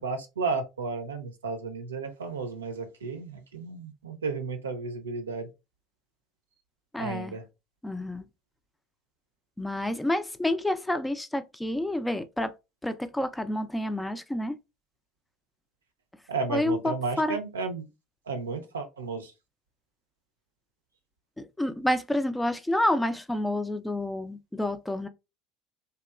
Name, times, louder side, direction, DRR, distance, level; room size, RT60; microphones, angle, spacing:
voice 1, 0.0-5.5 7.0-7.4 16.3-17.9 18.3-19.3, right 4 dB, 85° right, 0.5 m, -33 dB
voice 2, 6.9-7.4 7.8-8.3 9.6-12.6 12.8-14.6 16.5-17.4 21.4-25.1, left 1 dB, 10° left, 0.3 m, -29 dB
2.8 x 2.2 x 2.3 m
hypercardioid pair, 70°, 0 cm